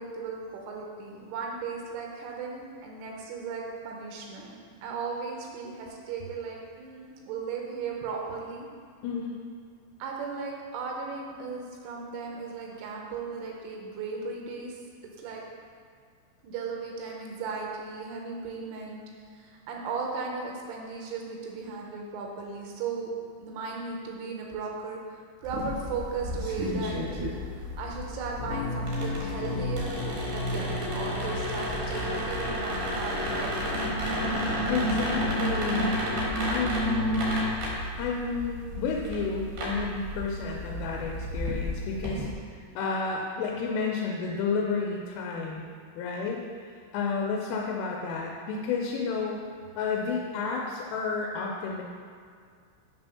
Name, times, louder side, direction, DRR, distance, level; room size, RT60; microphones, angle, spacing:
voice 1, 0.0-8.7 10.0-14.8 15.2-15.4 16.4-19.0 19.3-23.1 23.4-25.0 25.4-27.0 27.5-34.0, right 4 dB, 80° right, -1 dB, 3.3 m, -36 dB
voice 2, 9.0-9.4 34.7-36.0 36.5-37.2 38.0-42.3 42.8-45.7 46.0-49.4 49.8-51.8, left 5 dB, 85° left, -1 dB, 3.1 m, -31 dB
sound 1, 25.4-42.3, equal, 65° right, 2.1 m, -33 dB
sound 2, 28.4-37.5, left 1 dB, 60° left, 3.2 m, -31 dB
8.4 x 3.5 x 5.6 m, 2.1 s
omnidirectional pair, 5.7 m